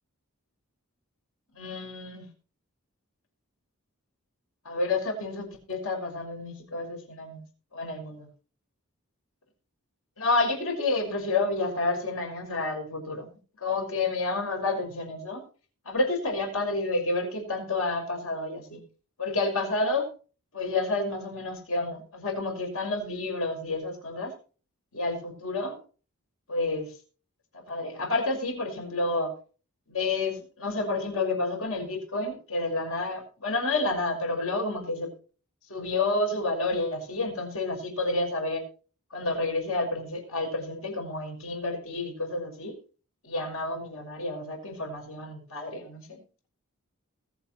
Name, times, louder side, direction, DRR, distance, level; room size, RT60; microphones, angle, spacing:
voice 1, 1.5-2.3 4.6-7.4 7.7-8.3 10.2-13.3 13.6-15.4 15.9-18.8 19.2-20.1 20.5-24.3 24.9-25.8 26.5-26.9 27.5-29.4 29.9-35.1 35.7-38.6 39.1-42.8 43.2-46.2, left 2 dB, 70° left, 3 dB, 6.0 m, -30 dB
20.5 x 8.0 x 4.5 m, 0.38 s
head